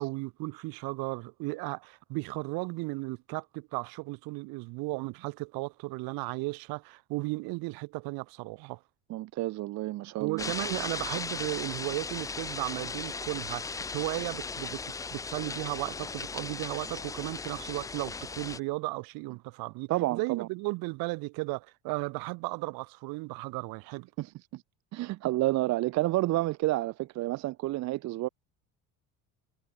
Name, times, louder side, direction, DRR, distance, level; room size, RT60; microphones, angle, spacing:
voice 1, 0.0-8.8 10.2-24.1, right 25 dB, 80° right, 4.0 m, -35 dB
voice 2, 9.1-10.5 19.9-20.5 24.2-24.6 24.9-28.3, right 17 dB, 50° right, 0.7 m, -30 dB
sound 1, 10.4-18.6, left 4 dB, 10° left, 0.3 m, -37 dB
cardioid pair, 155°, 36 cm